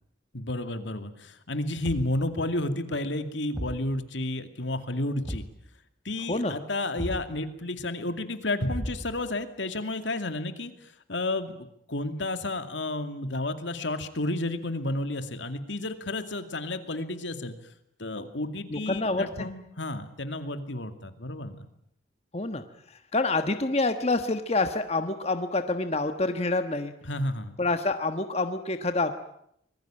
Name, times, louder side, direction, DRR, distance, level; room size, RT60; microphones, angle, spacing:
voice 1, 0.3-5.5 6.0-17.5 18.0-21.7 27.1-27.6, left 2 dB, 80° left, 8 dB, 2.5 m, -31 dB
Thump thud, 1.8-2.3 3.5-3.9 5.2-5.6 7.0-7.3 8.7-9.3, equal, ahead, 3.0 m, -35 dB
voice 2, 18.7-19.5 22.3-22.6 23.1-26.9 27.6-29.1, left 2 dB, 35° left, 8 dB, 1.3 m, -27 dB
25.5 x 21.5 x 8.9 m, 0.74 s
head